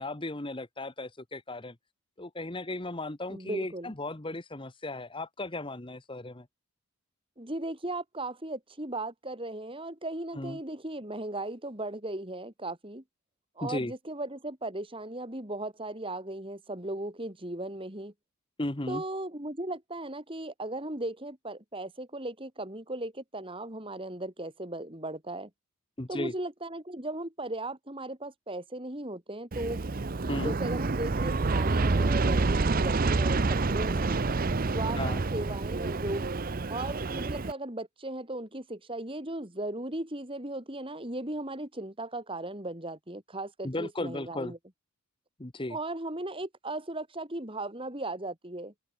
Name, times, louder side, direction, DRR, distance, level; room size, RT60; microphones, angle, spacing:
voice 1, 0.0-1.7 2.2-6.5 10.3-10.6 13.6-13.9 18.6-19.0 26.0-26.3 30.3-30.6 34.9-35.2 43.6-44.5 45.4-45.8, left 2 dB, 20° left, 1.2 m, -35 dB
voice 2, 3.3-3.9 7.4-13.0 13.6-18.1 18.9-25.5 26.1-29.8 30.4-34.2 34.7-35.0 35.3-36.3 36.7-44.6 45.7-48.7, right 1 dB, 25° right, 3.1 m, -37 dB
Aircraft, 29.5-37.5, right 3 dB, 40° right, 0.6 m, -28 dB
head